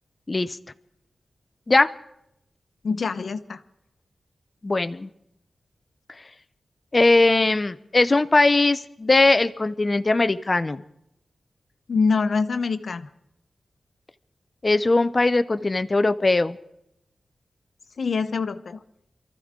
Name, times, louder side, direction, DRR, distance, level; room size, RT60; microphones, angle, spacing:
voice 1, 2.8-3.6 11.9-13.1 18.0-18.8, left 4 dB, 60° left, 10 dB, 0.9 m, -24 dB
voice 2, 4.6-5.1 6.9-10.8 14.6-16.6, left 2 dB, 25° left, 11 dB, 0.5 m, -20 dB
27.5 x 14.0 x 3.7 m, 0.79 s
wide cardioid pair, 155°, 0 cm